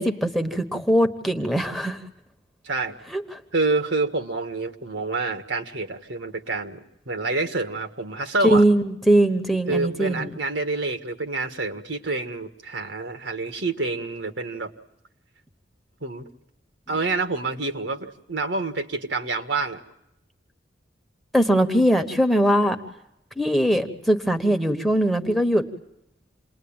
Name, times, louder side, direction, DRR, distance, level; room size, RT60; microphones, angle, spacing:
voice 1, 0.0-2.0 3.1-3.4 8.4-10.3 21.3-22.8 23.4-25.6, right 1 dB, ahead, 7 dB, 1.2 m, -21 dB
voice 2, 3.5-8.6 9.7-14.7 16.0-16.3 16.9-19.8, right 3 dB, 75° right, 6 dB, 1.7 m, -27 dB
28.0 x 20.5 x 8.9 m, 0.82 s
head